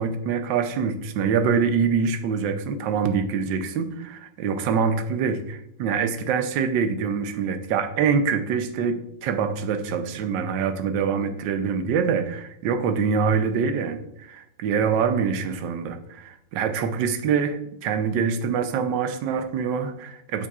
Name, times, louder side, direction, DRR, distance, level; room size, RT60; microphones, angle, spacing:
voice 1, 0.0-14.0 14.3-20.5, right 6 dB, 75° right, 8 dB, 1.3 m, -25 dB
8.4 x 7.0 x 2.4 m, 0.77 s
omnidirectional pair, 2.1 m